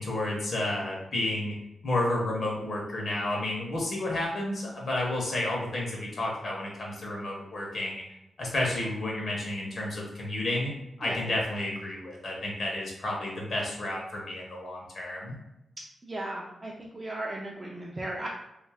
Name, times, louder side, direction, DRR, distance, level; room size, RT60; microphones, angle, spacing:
voice 1, 0.0-1.5 1.8-8.0 8.4-10.7 11.0-15.4, left 1 dB, 50° left, -2 dB, 0.7 m, -31 dB
voice 2, 16.0-18.3, right 1 dB, 20° right, -3 dB, 0.3 m, -36 dB
2.5 x 2.3 x 3.3 m, 0.90 s
wide cardioid pair, 160°, 0 cm